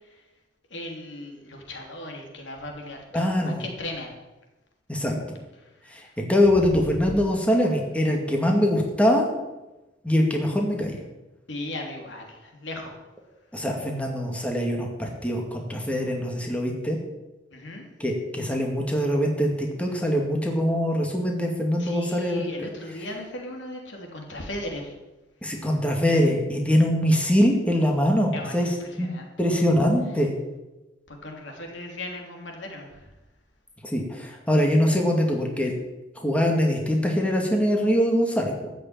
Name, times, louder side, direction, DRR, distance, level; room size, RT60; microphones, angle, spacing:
voice 1, 0.7-4.1 5.6-6.0 6.5-6.7 11.5-13.0 17.5-17.9 21.8-24.9 28.3-29.3 31.1-33.1, left 1 dB, 85° left, 2 dB, 3.0 m, -37 dB
voice 2, 3.1-3.6 4.9-5.2 5.9-9.3 10.0-11.0 13.5-17.0 18.0-22.7 25.4-29.1 29.4-30.3 33.8-35.7 36.2-38.7, equal, 5° left, 1 dB, 2.1 m, -23 dB
13.5 x 6.7 x 8.8 m, 1.0 s
head